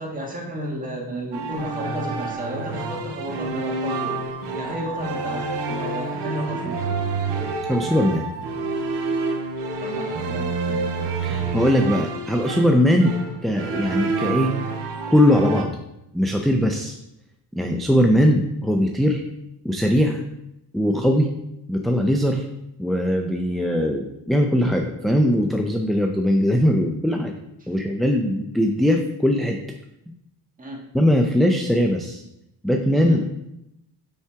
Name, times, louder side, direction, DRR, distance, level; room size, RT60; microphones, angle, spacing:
voice 1, 0.0-4.2 4.6-6.8 9.8-10.9 27.6-27.7 30.6-30.9 33.0-33.2, equal, 20° right, -1 dB, 1.5 m, -32 dB
sound 1, 1.3-15.6, right 3 dB, 80° right, 1.1 m, -28 dB
voice 2, 7.7-8.3 11.2-13.1 13.4-14.5 15.1-15.7 16.1-17.0 17.5-19.2 19.6-20.2 20.7-21.3 21.7-22.5 22.8-27.4 27.7-29.6 30.9-32.2 32.6-33.3, equal, ahead, 3 dB, 0.4 m, -20 dB
5.6 x 4.9 x 4.5 m, 0.86 s
cardioid pair, 115°, 41 cm